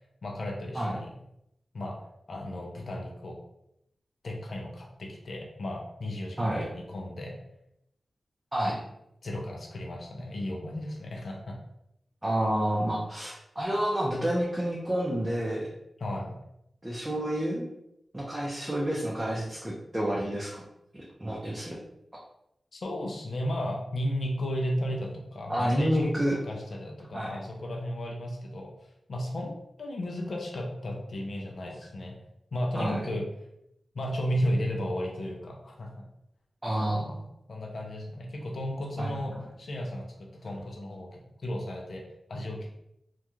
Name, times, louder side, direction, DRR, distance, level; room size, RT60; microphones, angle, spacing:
voice 1, 0.2-1.1 1.7-2.0 2.3-3.4 4.2-7.3 9.2-11.6 16.0-16.4 22.7-26.1 26.4-28.7 29.1-29.5 29.8-32.1 32.5-33.3 33.9-36.0 37.5-42.0 42.3-42.7, equal, 65° left, 0 dB, 0.4 m, -34 dB
voice 2, 12.2-15.7 16.8-17.7 18.1-20.6 20.9-21.8 25.5-26.4 27.1-27.3 32.7-33.0 36.6-37.2 39.0-39.3, right 1 dB, 15° right, -5 dB, 0.5 m, -29 dB
2.3 x 2.2 x 2.9 m, 0.81 s
wide cardioid pair, 100°, 0 cm